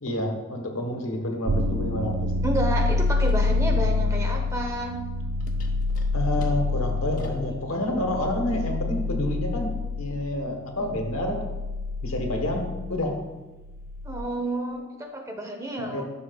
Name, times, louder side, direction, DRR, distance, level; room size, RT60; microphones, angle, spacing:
voice 1, 0.0-2.3 6.1-11.4 12.0-13.1 15.8-16.0, left 1 dB, 75° left, 3 dB, 1.2 m, -29 dB
sound 1, 1.5-14.2, left 3 dB, 45° right, 0.3 m, -27 dB
voice 2, 2.4-5.0 14.0-16.0, right 1 dB, 15° right, 3 dB, 0.8 m, -30 dB
sound 2, 3.2-3.5 5.4-7.5, left 1 dB, 35° left, 0.9 m, -47 dB
11.5 x 6.1 x 2.4 m, 1.1 s
head